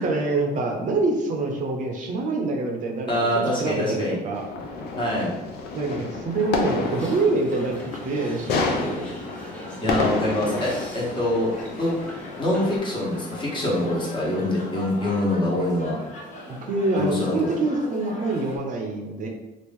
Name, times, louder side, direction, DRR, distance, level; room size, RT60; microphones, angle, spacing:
voice 1, 0.0-3.1 3.5-4.5 5.7-7.8 8.0-9.1 16.5-19.3, right 2 dB, 50° right, 1 dB, 0.6 m, -25 dB
voice 2, 3.1-4.2 5.0-5.3 9.8-11.5 11.8-11.9 12.4-16.0 17.0-17.5, left 1 dB, 30° left, -5 dB, 1.2 m, -24 dB
sound 1, 4.3-12.8, left 3 dB, 70° left, 0.6 m, -30 dB
sound 2, 6.3-18.6, left 1 dB, 45° left, 0.8 m, -41 dB
sound 3, 6.8-12.8, equal, 5° left, 0.8 m, -45 dB
3.0 x 2.4 x 3.5 m, 1.0 s
cardioid pair, 110°, 17 cm